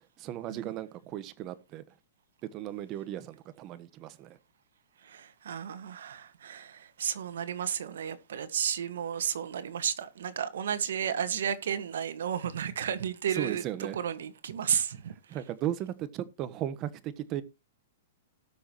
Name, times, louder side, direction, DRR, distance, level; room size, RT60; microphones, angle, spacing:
voice 1, 0.2-1.8 2.5-4.4 13.3-14.0 15.3-17.4, right 12 dB, 30° right, 1.2 m, -36 dB
voice 2, 5.1-13.6 13.9-15.1, right 8 dB, 80° right, 1.7 m, -32 dB
18.5 x 6.5 x 3.0 m
hypercardioid pair, 150°, 0 cm